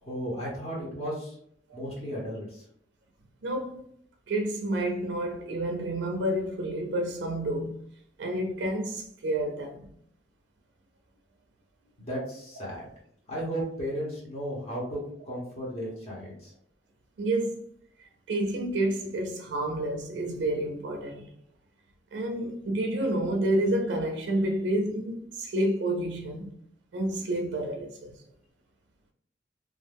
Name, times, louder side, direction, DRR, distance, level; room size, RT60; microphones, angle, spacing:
voice 1, 0.0-1.3 1.7-2.6 12.0-12.9 13.3-16.5, equal, 35° left, 0.8 m, -34 dB
voice 2, 3.4-3.8 4.3-7.8 8.2-9.9 17.2-17.6 18.0-21.3 22.1-26.5 26.9-28.2, right 1 dB, 75° right, 0.4 m, -29 dB
2.4 x 2.1 x 3.3 m
head